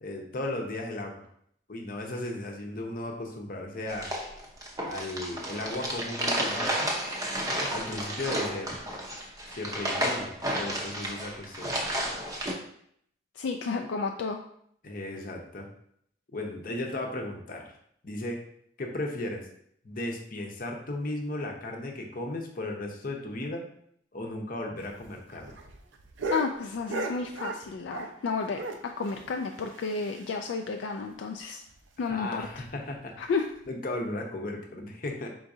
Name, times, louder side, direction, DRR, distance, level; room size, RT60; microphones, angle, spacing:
voice 1, 0.0-1.1 1.7-4.1 4.8-6.9 7.7-8.8 9.5-11.8 14.8-15.7 16.3-17.7 18.0-18.4 18.8-19.5 19.8-23.6 24.1-25.5 32.0-33.1 33.7-35.3, left 1 dB, 50° left, 1 dB, 0.7 m, -35 dB
sound 1, 3.9-12.5, right 1 dB, 20° right, 0.6 m, -32 dB
voice 2, 13.4-14.4 26.3-31.6 32.0-32.5 33.2-33.5, left 4 dB, 75° left, 3 dB, 0.3 m, -32 dB
sound 2, 24.8-28.2 28.5-30.5 30.8-30.9 31.2-31.3 31.7-31.8 32.4-32.7 33.5-33.6, right 2 dB, 90° right, 0.6 m, -37 dB
4.7 x 3.9 x 2.6 m, 0.68 s
head